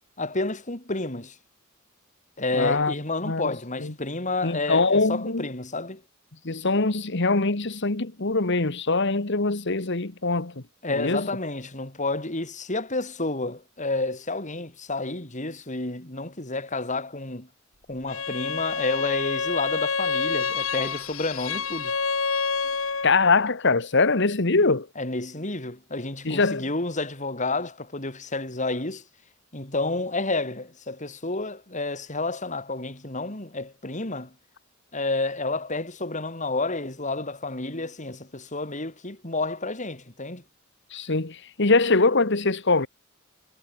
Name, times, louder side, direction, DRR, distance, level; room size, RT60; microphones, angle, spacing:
voice 1, 0.2-1.3 2.4-6.0 10.8-17.5 17.9-21.9 25.0-29.0 29.5-34.3 34.9-40.4, left 2 dB, 35° left, 4.8 m, -30 dB
voice 2, 2.5-2.9 3.2-3.5 3.8-3.9 4.4-5.4 6.4-10.6 10.9-11.3 23.0-24.9 26.2-26.7 40.9-42.9, left 3 dB, 60° left, 1.7 m, -23 dB
Bowed string instrument, 18.1-23.2, left 5 dB, 90° left, 2.8 m, -28 dB
head